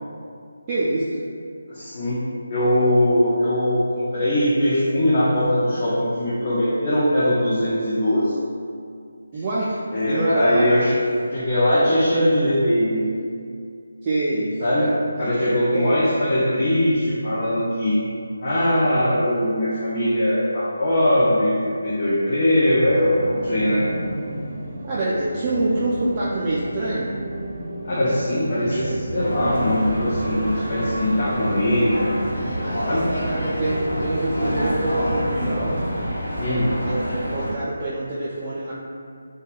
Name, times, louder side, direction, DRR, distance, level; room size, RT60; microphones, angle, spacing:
voice 1, 0.7-1.2 9.3-10.7 14.0-15.0 15.7-16.0 24.8-27.1 33.3-35.8 36.8-38.7, right 2 dB, 25° right, -9 dB, 0.3 m, -25 dB
voice 2, 1.7-2.2 2.5-8.3 9.9-10.9 11.3-13.1 14.6-14.8 15.2-18.0 18.4-23.9 27.8-32.1 32.8-33.1 36.4-36.7, left 1 dB, 40° left, -10 dB, 0.5 m, -21 dB
sound 1, 22.6-36.1, right 1 dB, 45° right, 0.8 m, -33 dB
sound 2, 29.1-37.5, equal, 85° left, 0.7 m, -28 dB
2.2 x 2.2 x 3.2 m, 2.3 s
figure-of-eight pair, 155°, 0 cm